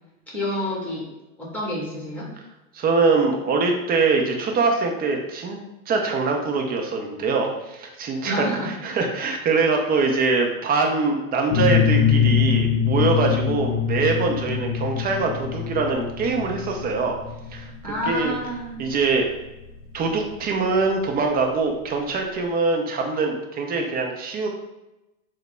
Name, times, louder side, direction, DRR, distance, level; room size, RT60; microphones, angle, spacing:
voice 1, 0.3-1.0 1.4-2.3 8.2-9.0 17.8-18.8, equal, 5° left, -5 dB, 1.3 m, -28 dB
voice 2, 2.7-5.6 5.9-17.2 17.5-17.7 18.1-18.4 18.8-19.3 19.9-24.5, right 4 dB, 20° right, 2 dB, 0.5 m, -23 dB
sound 1, 11.5-20.9, left 7 dB, 35° left, 0.6 m, -23 dB
3.4 x 2.2 x 3.3 m, 0.98 s
hypercardioid pair, 105°, 42 cm